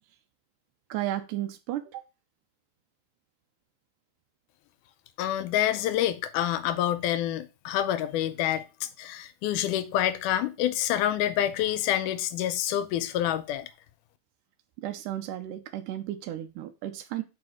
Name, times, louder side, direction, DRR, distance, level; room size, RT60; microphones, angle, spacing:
voice 1, 0.9-2.0 14.8-17.2, right 13 dB, 90° right, 2.2 m, -34 dB
voice 2, 5.2-13.7, left 12 dB, 85° left, 2.2 m, -27 dB
4.9 x 4.9 x 4.9 m
omnidirectional pair, 3.5 m